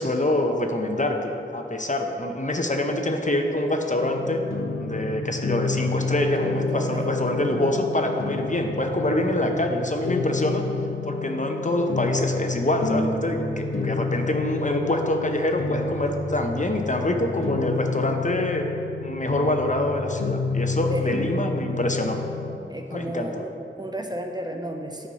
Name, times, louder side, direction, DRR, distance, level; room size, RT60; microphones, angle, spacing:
voice 1, 0.0-4.4 4.8-10.6 11.0-18.7 19.0-22.2 22.9-23.3, left 1 dB, 40° left, 3 dB, 0.7 m, -25 dB
sound 1, 4.0-22.6, left 3 dB, 80° left, 0.8 m, -29 dB
voice 2, 6.7-7.8 20.8-21.1 22.7-25.1, right 1 dB, 20° right, 3 dB, 0.7 m, -33 dB
9.1 x 5.2 x 4.0 m, 2.7 s
wide cardioid pair, 40°, 20 cm